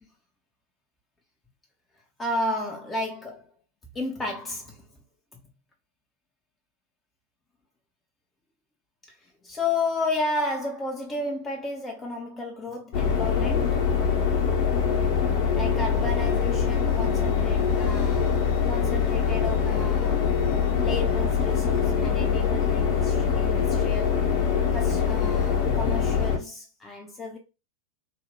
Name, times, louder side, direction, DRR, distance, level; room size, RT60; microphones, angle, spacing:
voice 1, 2.2-3.5 3.9-4.9 9.1-13.8 15.5-20.3 20.8-24.2 24.7-27.4, left 2 dB, 15° left, 0.5 m, -32 dB
sound 1, 12.9-26.4, left 6 dB, 45° left, 0.7 m, -23 dB
2.9 x 2.1 x 2.8 m
figure-of-eight pair, 90°, 0 cm